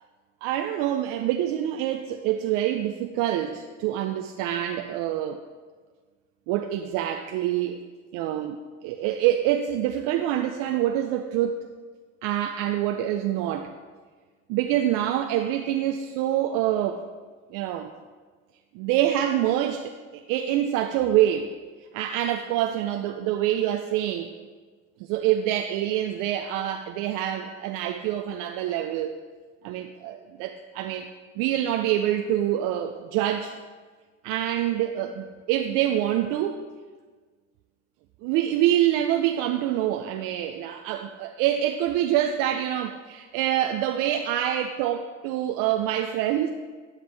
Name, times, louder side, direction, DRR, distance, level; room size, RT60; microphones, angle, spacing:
voice 1, 0.4-5.4 6.5-7.8 8.1-11.7 12.2-13.7 14.5-17.0 17.5-17.9 18.7-21.5 21.9-24.3 25.1-29.2 29.6-31.1 31.4-33.5 34.2-36.6 38.2-46.5, right 11 dB, 55° right, 5 dB, 0.5 m, -26 dB
11.5 x 5.1 x 3.3 m, 1.5 s
hypercardioid pair, 85°, 38 cm